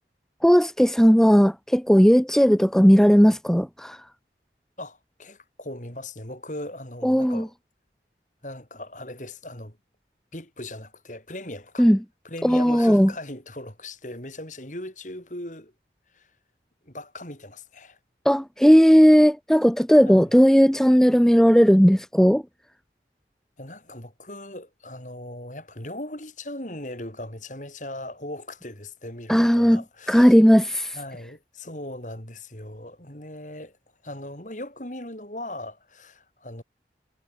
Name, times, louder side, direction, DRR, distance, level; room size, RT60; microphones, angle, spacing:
voice 1, 0.4-4.0 7.0-7.5 11.8-12.0 12.4-13.1 18.2-22.4 29.3-29.8 30.1-31.0, equal, 5° left, 0.9 m, -16 dB
voice 2, 4.8-7.5 8.4-9.8 10.3-11.9 12.2-15.7 16.1-16.3 16.8-18.0 20.0-20.3 23.6-30.3 30.9-33.8 34.0-36.6, left 1 dB, 45° left, 6.5 m, -38 dB
head